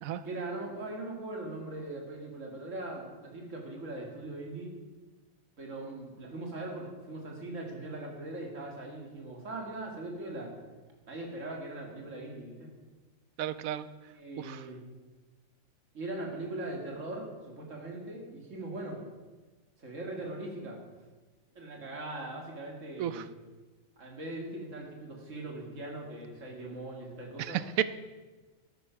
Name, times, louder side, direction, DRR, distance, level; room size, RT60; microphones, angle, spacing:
voice 1, 0.2-4.8 5.6-10.5 11.1-12.7 14.1-14.8 15.9-19.0 19.8-20.8 21.5-23.2 24.0-27.6, right 2 dB, 65° right, 0 dB, 2.6 m, -40 dB
voice 2, 13.4-13.9 14.4-14.7 23.0-23.2 27.4-27.8, right 11 dB, 85° right, 14 dB, 1.1 m, -32 dB
12.5 x 9.6 x 5.8 m, 1.3 s
omnidirectional pair, 1.4 m